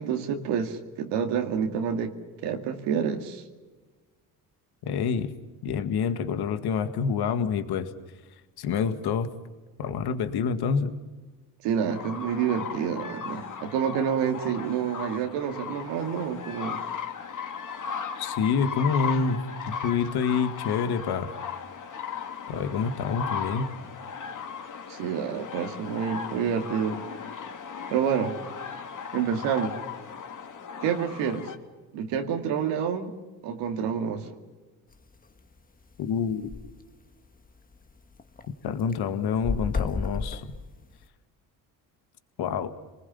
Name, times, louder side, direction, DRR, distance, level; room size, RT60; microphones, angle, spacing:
voice 1, 0.0-2.1 2.4-3.4 11.6-16.8 24.9-27.0 27.9-28.4 29.1-29.7 30.8-31.5 31.9-33.1 33.4-34.3, right 7 dB, 90° right, 4 dB, 2.3 m, -28 dB
voice 2, 4.8-5.3 5.6-7.9 8.6-9.3 9.8-10.9 18.2-21.3 22.5-23.7 36.0-36.5 38.6-40.5 42.4-42.7, left 6 dB, 65° left, 9 dB, 1.9 m, -27 dB
sound 1, 11.9-31.6, left 7 dB, 50° left, 2.9 m, -37 dB
sound 2, 34.9-35.2 35.6-35.7 35.9-36.0 36.3-36.7 37.2-37.3 37.7-38.5 38.8-41.0, left 4 dB, 20° left, 1.6 m, -32 dB
28.0 x 20.0 x 7.1 m, 1.3 s
cardioid pair, 95°, 41 cm